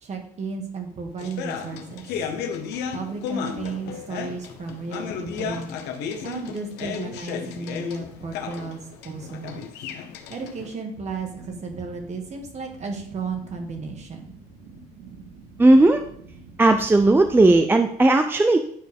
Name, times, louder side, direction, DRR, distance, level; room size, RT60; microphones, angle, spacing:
voice 1, 0.0-2.0 2.9-5.7 6.2-9.6 10.3-14.3, right 4 dB, 40° right, 3 dB, 1.7 m, -34 dB
sound 1, 1.2-10.7, left 7 dB, 90° left, 0.9 m, -34 dB
sound 2, 10.9-17.5, right 3 dB, 85° right, 1.5 m, -46 dB
voice 2, 15.6-16.0 16.6-18.6, right 2 dB, 10° right, 7 dB, 0.4 m, -16 dB
10.0 x 4.5 x 3.5 m, 0.65 s
cardioid pair, 110°, 17 cm